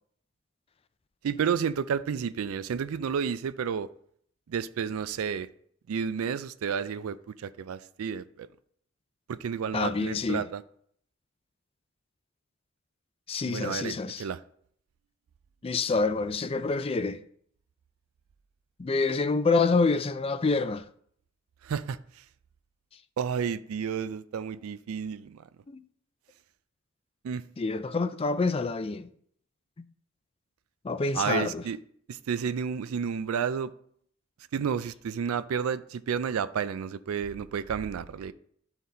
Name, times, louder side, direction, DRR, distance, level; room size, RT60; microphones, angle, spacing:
voice 1, 1.2-3.9 4.5-5.5 5.9-8.5 9.3-10.6 13.5-14.4 21.6-22.0 23.2-25.4 27.2-27.4 31.1-31.8 32.1-33.7 34.5-38.3, right 7 dB, 80° right, 0.4 m, -31 dB
voice 2, 9.7-10.4 13.3-14.3 15.6-17.2 18.8-20.8 25.7-25.8 27.6-29.1 30.8-31.6, left 4 dB, 25° left, 0.4 m, -27 dB
11.0 x 4.0 x 4.1 m
head